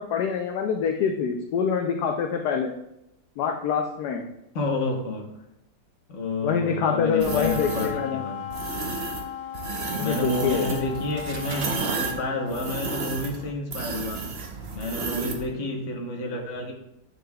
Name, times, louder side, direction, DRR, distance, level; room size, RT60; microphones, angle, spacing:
voice 1, 0.0-2.7 3.4-4.2 6.4-8.2 10.0-10.7, left 6 dB, 70° left, 3 dB, 1.0 m, -25 dB
voice 2, 4.5-5.3 6.1-8.4 10.0-14.2 14.7-16.7, left 2 dB, 45° left, 1 dB, 1.2 m, -29 dB
Wind instrument woodwind instrument, 7.2-13.3, left 8 dB, 90° left, 1.5 m, -37 dB
sound 1, 7.2-7.9 8.5-9.2 9.5-15.5, right 4 dB, 65° right, 0.6 m, -32 dB
8.8 x 6.6 x 2.3 m, 0.84 s
omnidirectional pair, 2.1 m